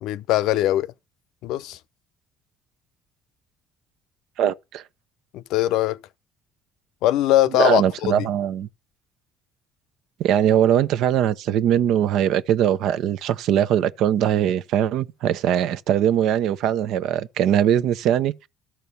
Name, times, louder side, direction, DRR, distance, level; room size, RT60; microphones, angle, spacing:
voice 1, 0.0-0.9 1.4-1.8 5.3-6.0 7.0-8.3, left 15 dB, 75° left, 0.6 m, -21 dB
voice 2, 4.4-4.8 7.6-8.7 10.2-18.5, right 10 dB, 70° right, 0.8 m, -21 dB
13.0 x 4.4 x 6.8 m
supercardioid pair, 90°, 0 cm